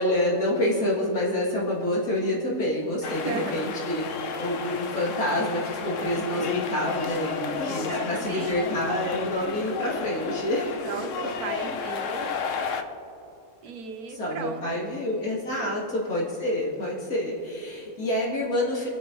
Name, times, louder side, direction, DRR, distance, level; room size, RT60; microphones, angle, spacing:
voice 1, 0.0-10.8 14.1-18.9, left 1 dB, 80° left, -6 dB, 3.6 m, -27 dB
sound 1, 3.0-12.8, left 6 dB, 60° left, 1.1 m, -32 dB
voice 2, 3.0-3.5 7.6-9.0 10.8-12.3 13.6-14.8 15.6-15.7, right 5 dB, 85° right, 5 dB, 1.6 m, -37 dB
26.0 x 8.9 x 3.2 m, 2.7 s
omnidirectional pair, 1.5 m